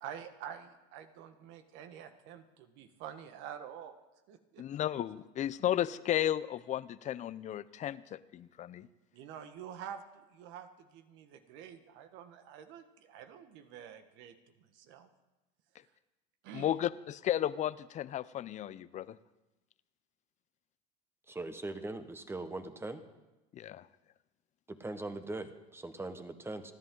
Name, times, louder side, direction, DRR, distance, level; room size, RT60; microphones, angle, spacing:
voice 1, 0.0-3.9 4.3-4.6 9.1-15.1 16.4-16.7, right 9 dB, 60° right, 8 dB, 1.5 m, -48 dB
voice 2, 4.6-8.9 16.5-19.2 23.5-23.9, left 11 dB, 35° left, 17 dB, 0.6 m, -34 dB
voice 3, 21.3-23.0 24.7-26.7, right 2 dB, 10° right, 9 dB, 1.3 m, -41 dB
29.0 x 10.5 x 3.9 m, 1.0 s
supercardioid pair, 105°, 21 cm